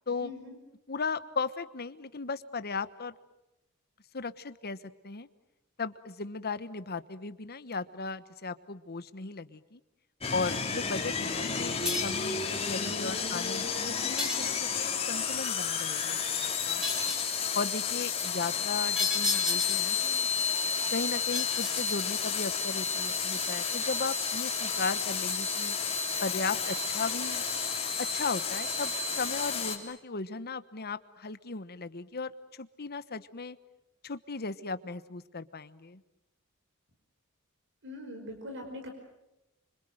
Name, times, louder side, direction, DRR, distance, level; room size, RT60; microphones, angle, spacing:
voice 1, 0.2-0.5 37.8-38.9, left 1 dB, 60° right, 4 dB, 5.1 m, -42 dB
voice 2, 0.9-3.1 4.1-4.8 5.0-5.3 5.8-9.8 10.3-16.8 17.5-20.3 20.9-25.8 26.2-27.4 28.1-33.6 34.0-36.0, left 4 dB, 45° left, 13 dB, 1.2 m, -36 dB
sound 1, 10.2-29.8, left 6 dB, 25° left, 3.3 m, -31 dB
sound 2, 11.9-12.3 14.2-14.9 16.8-17.4 19.0-20.0 21.3-22.4, left 2 dB, 5° right, 4.3 m, -33 dB
26.5 x 26.0 x 7.9 m, 0.94 s
head